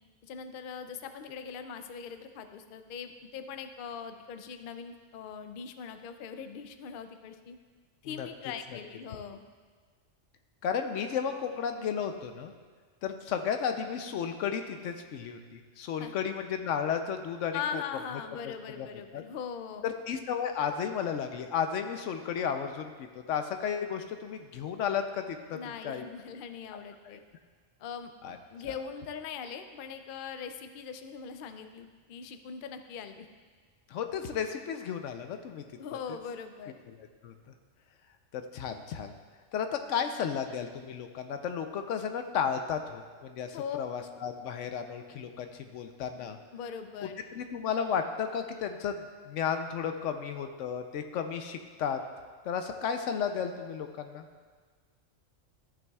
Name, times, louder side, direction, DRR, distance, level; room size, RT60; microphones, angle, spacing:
voice 1, 0.2-7.6 8.0-9.4 16.0-16.1 17.5-19.8 25.5-27.2 27.8-33.3 35.8-36.8 43.5-43.8 46.1-47.2, left 7 dB, 60° left, 8 dB, 0.6 m, -41 dB
voice 2, 10.6-12.5 13.0-17.8 18.4-18.9 19.1-19.2 19.8-26.0 27.0-27.2 28.2-28.4 28.6-28.7 33.9-35.6 37.0-37.3 38.3-39.1 39.5-46.4 47.0-52.0 52.4-54.3, left 7 dB, 85° left, 7 dB, 1.0 m, -33 dB
13.5 x 6.2 x 2.3 m, 1.5 s
omnidirectional pair, 1.3 m